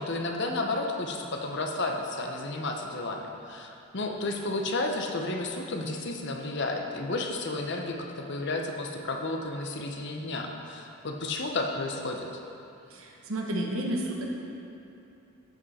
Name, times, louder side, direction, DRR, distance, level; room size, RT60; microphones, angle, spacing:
voice 1, 0.0-12.3, left 2 dB, 50° left, 2 dB, 0.8 m, -32 dB
voice 2, 12.9-14.3, right 1 dB, 65° right, -1 dB, 1.2 m, -31 dB
13.5 x 5.4 x 4.2 m, 2.8 s
head